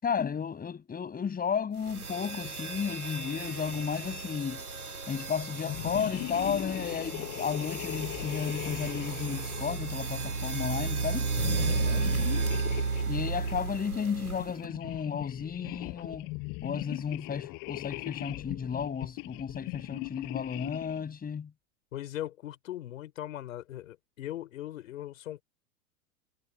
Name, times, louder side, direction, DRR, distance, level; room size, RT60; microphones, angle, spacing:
voice 1, 0.0-4.6 5.1-11.3 13.1-16.3 16.6-21.5, left 7 dB, 20° left, 6.3 m, -33 dB
sound 1, 1.8-14.7, right 4 dB, 85° right, 3.0 m, -33 dB
sound 2, 5.6-10.5 11.3-13.6 14.3-21.1, left 30 dB, 45° left, 7.1 m, -39 dB
voice 2, 11.7-12.0 21.9-25.4, left 13 dB, 65° left, 5.1 m, -39 dB
figure-of-eight pair, 95°, 43 cm